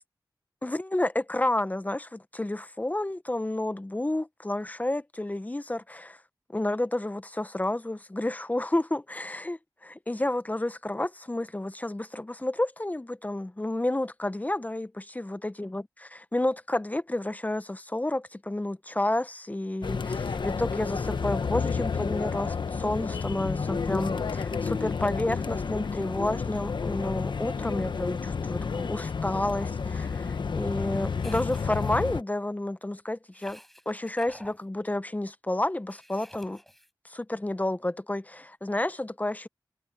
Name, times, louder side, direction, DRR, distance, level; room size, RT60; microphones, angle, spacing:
voice 1, 0.6-6.2 6.5-15.8 16.3-33.6 33.9-36.6 37.0-39.5, left 1 dB, 20° left, 0.8 m, -30 dB
sound 1, 19.8-32.2, left 5 dB, 70° left, 1.2 m, -30 dB
sound 2, 31.2-32.2 33.3-34.6 35.9-36.9, equal, 5° left, 6.3 m, -50 dB
wide cardioid pair, 70°, 8 cm